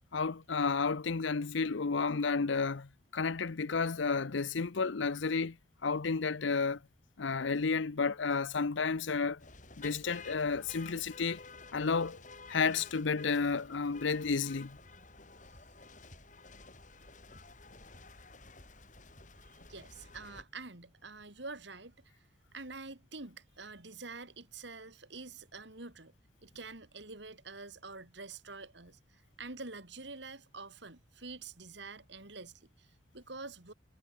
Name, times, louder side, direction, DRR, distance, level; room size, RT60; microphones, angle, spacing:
voice 1, 0.1-5.6 5.8-6.8 7.2-9.4 9.8-11.4 11.7-12.2 12.5-14.8, left 4 dB, 75° left, 0.7 m, -31 dB
sound 1, 9.4-20.4, left 3 dB, 40° left, 6.6 m, -52 dB
voice 2, 19.5-22.1 22.5-26.1 26.4-33.7, right 3 dB, 60° right, 3.1 m, -47 dB
head